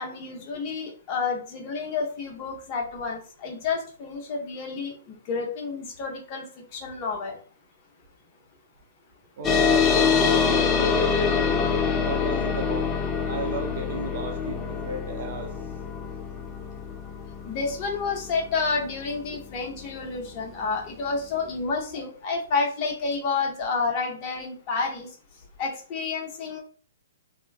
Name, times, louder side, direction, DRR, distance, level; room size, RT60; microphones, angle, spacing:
voice 1, 0.0-4.9 5.3-6.4 6.7-7.4 17.4-25.1 25.6-26.6, left 4 dB, 40° left, 0 dB, 0.9 m, -29 dB
sound 1, 9.4-20.4, left 5 dB, 20° left, 0.4 m, -25 dB
voice 2, 9.4-11.5 12.0-15.5, right 3 dB, 55° right, 3 dB, 0.5 m, -35 dB
2.9 x 2.1 x 2.4 m, 0.41 s
figure-of-eight pair, 120°, 0 cm